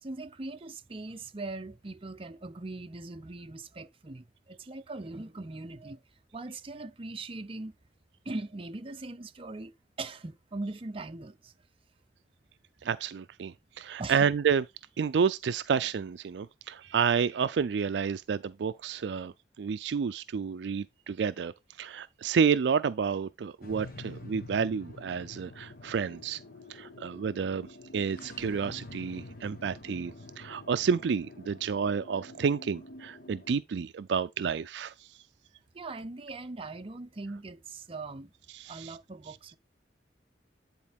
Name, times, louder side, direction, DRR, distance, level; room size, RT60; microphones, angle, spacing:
voice 1, 0.0-6.0 6.3-7.7 8.3-9.7 10.0-11.5 14.0-14.3 35.7-38.3 38.7-39.6, right 2 dB, 30° right, 0.6 m, -40 dB
voice 2, 12.8-14.6 15.0-19.3 19.6-21.5 21.8-26.4 26.7-27.7 27.9-34.9 38.5-38.9, right 6 dB, 70° right, 0.4 m, -30 dB
sound 1, 23.6-33.6, left 2 dB, 55° left, 1.0 m, -47 dB
9.8 x 4.4 x 3.6 m
head